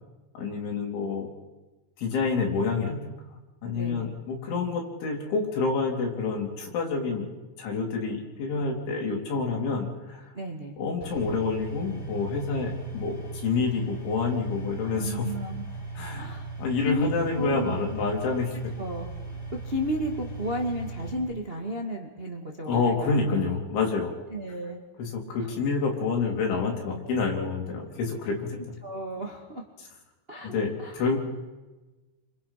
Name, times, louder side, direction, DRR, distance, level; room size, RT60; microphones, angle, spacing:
voice 1, 0.4-1.3 2.0-3.0 3.6-7.3 7.6-10.3 10.8-15.3 16.0-16.3 16.6-18.7 22.7-24.1 25.0-28.5 30.5-31.2, left 4 dB, 75° left, 0 dB, 6.2 m, -28 dB
voice 2, 3.7-4.1 10.3-10.8 14.8-15.7 16.1-16.4 16.8-17.1 17.3-17.7 18.8-19.1 19.6-23.4 24.3-24.8 28.8-29.7 30.3-30.5 30.8-31.1, equal, 55° right, 1 dB, 0.6 m, -33 dB
sound 1, 11.0-21.1, right 3 dB, 60° left, 10.0 m, -38 dB
29.0 x 26.0 x 5.9 m, 1.2 s
omnidirectional pair, 5.4 m